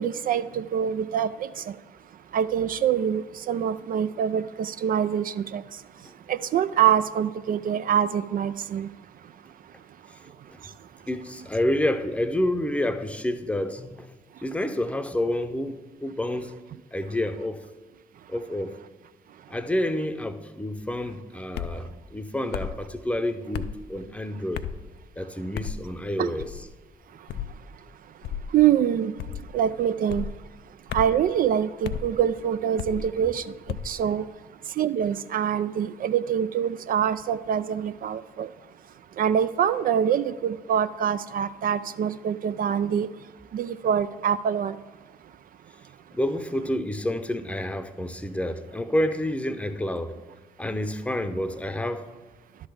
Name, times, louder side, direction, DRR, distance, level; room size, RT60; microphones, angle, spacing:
voice 1, 0.0-1.8 2.3-5.6 6.3-8.9 26.2-26.3 28.5-29.1 29.5-30.3 30.9-34.3 34.8-38.5 39.2-43.1 43.5-44.8, right 9 dB, 50° right, 0.4 m, -25 dB
voice 2, 11.1-14.1 14.4-16.6 16.9-17.6 18.3-18.7 19.5-24.6 25.2-26.7 46.1-50.2 50.6-52.1, left 1 dB, 5° left, 0.7 m, -29 dB
sound 1, 21.5-21.8 22.5-22.8 23.5-23.8 24.5-24.8 25.5-25.8 26.4-26.7 27.3-27.6 28.2-28.5 29.2-29.5 30.1-30.3 30.9-31.2 31.8-32.1 32.8-33.1 33.7-33.9, left 9 dB, 60° left, 0.5 m, -33 dB
11.0 x 3.9 x 6.9 m
hypercardioid pair, 45°, 19 cm